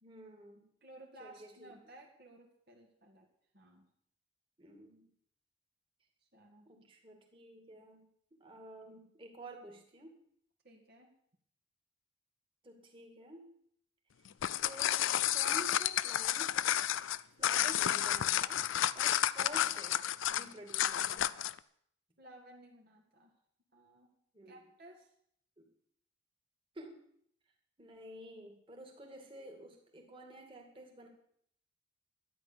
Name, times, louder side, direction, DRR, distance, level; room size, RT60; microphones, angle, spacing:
voice 1, 0.0-0.6 1.2-1.7 4.6-5.1 6.7-8.0 8.4-10.2 12.6-13.5 14.6-15.0 15.3-16.6 17.4-18.6 18.9-20.0 20.3-21.4 24.3-24.6 25.6-25.7 26.7-27.0 27.8-31.1, right 1 dB, 25° right, 1 dB, 2.3 m, -50 dB
voice 2, 0.8-3.3 3.5-3.9 6.3-6.7 10.6-11.1 22.2-23.3 23.7-24.1 24.5-25.1, right 1 dB, 50° right, 0 dB, 2.0 m, -57 dB
sound 1, 14.3-21.6, left 11 dB, 70° left, 0.4 m, -31 dB
12.5 x 10.0 x 6.9 m, 0.67 s
head